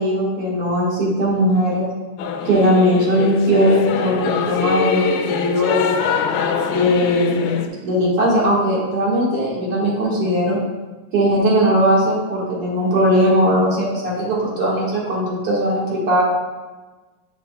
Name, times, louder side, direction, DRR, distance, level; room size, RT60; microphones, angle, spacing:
voice 1, 0.0-1.9 2.5-6.0 6.7-7.5 7.8-10.6 11.1-16.2, equal, 50° right, -6 dB, 2.5 m, -18 dB
Singing / Musical instrument, 2.2-7.7, left 6 dB, 85° left, 2.2 m, -23 dB
8.2 x 7.2 x 2.4 m, 1.2 s
omnidirectional pair, 3.7 m